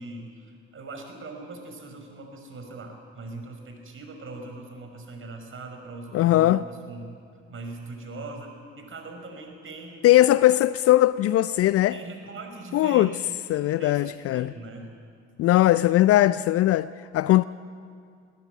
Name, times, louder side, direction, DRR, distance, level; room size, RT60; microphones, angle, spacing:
voice 1, 0.0-7.1 7.5-10.1 11.7-14.9, right 2 dB, 35° right, 5.6 m, -41 dB
voice 2, 6.1-6.6 10.0-12.0 12.7-13.1 13.5-14.5 15.4-17.4, left 15 dB, 45° left, 0.5 m, -20 dB
20.0 x 19.5 x 9.3 m
figure-of-eight pair, 55°, 34 cm